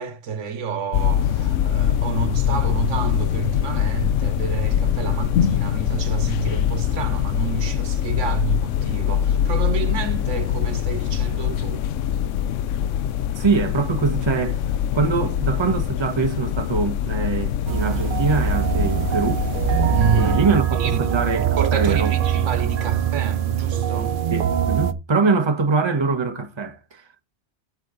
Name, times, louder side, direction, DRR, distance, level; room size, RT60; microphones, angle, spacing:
voice 1, 0.0-11.8 19.9-20.4 20.8-21.0 21.6-24.2, right 6 dB, 80° right, 1.3 m, -29 dB
sound 1, 0.9-20.4, left 9 dB, 80° left, 1.0 m, -23 dB
voice 2, 13.4-14.6 14.9-19.5 20.1-22.1 24.3-27.0, right 4 dB, 25° right, 1.0 m, -23 dB
sound 2, 17.7-24.9, right 9 dB, 55° right, 0.7 m, -22 dB
8.5 x 7.3 x 3.9 m
omnidirectional pair, 1.3 m